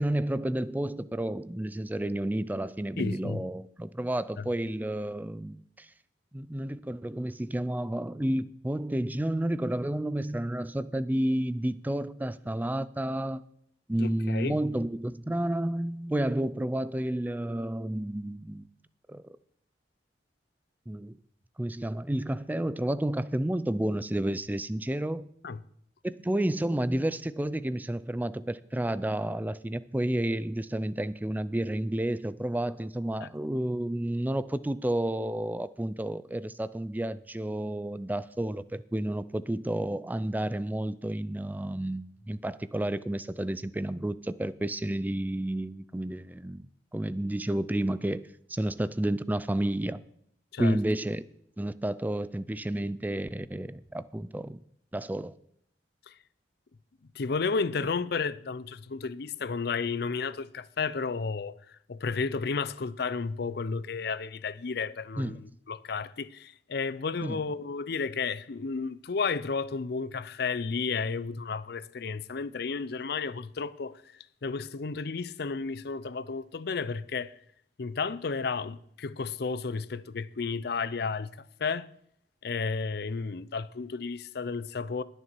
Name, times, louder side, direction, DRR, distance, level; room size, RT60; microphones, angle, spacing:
voice 1, 0.0-5.9 6.3-13.4 13.9-18.6 19.1-19.2 20.9-21.1 21.6-25.3 26.0-46.7 46.9-48.2 48.5-50.0 50.6-51.2 51.6-54.6 54.9-55.3 65.2-65.4 67.2-67.4, right 1 dB, 10° right, 0.4 m, -31 dB
voice 2, 3.0-3.4 4.4-4.5 14.0-14.6 25.4-25.6 33.2-33.3 50.5-50.8 56.1-56.2 57.1-74.0 74.4-77.3 77.8-81.3 81.6-81.9 82.4-85.0, left 4 dB, 60° left, 0.5 m, -32 dB
20.0 x 6.8 x 4.6 m
head